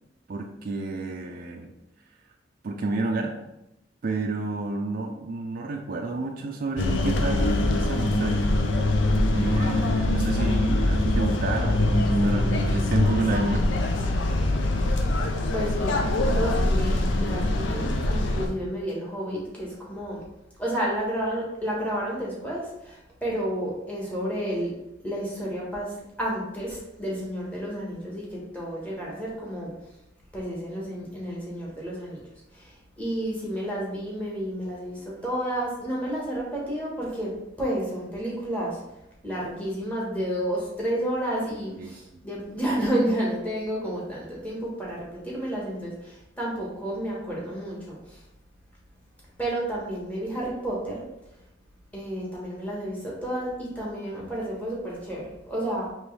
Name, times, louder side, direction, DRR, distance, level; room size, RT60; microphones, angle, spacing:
voice 1, 0.3-1.7 2.6-3.4 4.0-8.5 9.3-13.6 41.8-42.0, right 3 dB, 45° right, 2 dB, 0.4 m, -30 dB
sound 1, 6.8-18.5, left 1 dB, 70° left, 0.5 m, -23 dB
voice 2, 15.5-20.2 20.6-24.7 25.0-29.7 30.3-32.2 32.5-37.3 37.6-38.8 39.2-48.2 49.4-51.0 51.9-55.9, right 1 dB, 10° left, -5 dB, 1.2 m, -31 dB
4.5 x 3.0 x 3.2 m, 0.88 s
head